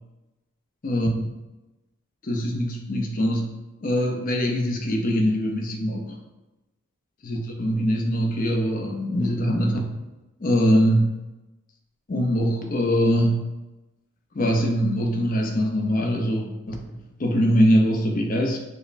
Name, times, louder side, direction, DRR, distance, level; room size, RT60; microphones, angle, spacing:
voice 1, 0.8-1.3 2.2-3.5 3.8-6.2 7.2-9.9 10.4-11.1 12.1-13.5 14.3-18.6, equal, 40° left, 2 dB, 0.5 m, -23 dB
5.2 x 2.1 x 2.5 m, 1.0 s
head